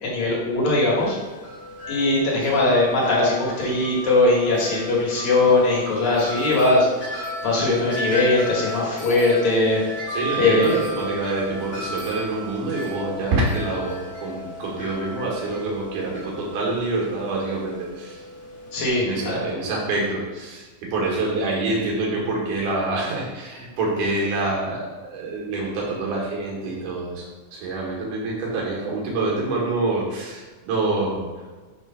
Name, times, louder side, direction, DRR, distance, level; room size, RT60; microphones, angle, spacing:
voice 1, 0.0-1.2 1.9-9.8 10.4-10.7 18.7-19.4, left 2 dB, 65° left, -4 dB, 2.8 m, -20 dB
Wind chime, 1.0-18.9, equal, 50° left, 0.8 m, -35 dB
voice 2, 10.1-18.2 19.0-31.3, right 2 dB, 90° right, -3 dB, 2.8 m, -26 dB
6.3 x 3.3 x 5.6 m, 1.3 s
omnidirectional pair, 3.5 m